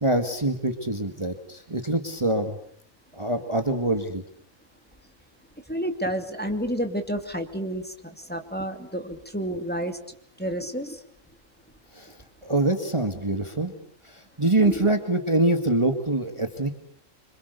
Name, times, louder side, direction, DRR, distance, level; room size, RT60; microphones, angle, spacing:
voice 1, 0.0-2.6 3.1-4.2 11.9-12.1 12.4-13.7 14.0-16.8, right 2 dB, 20° right, 5 dB, 2.0 m, -25 dB
voice 2, 5.7-7.8 8.3-10.0 10.4-11.0 14.6-14.9, equal, 5° left, 5 dB, 2.6 m, -30 dB
27.0 x 26.5 x 6.8 m, 0.64 s
omnidirectional pair, 1.4 m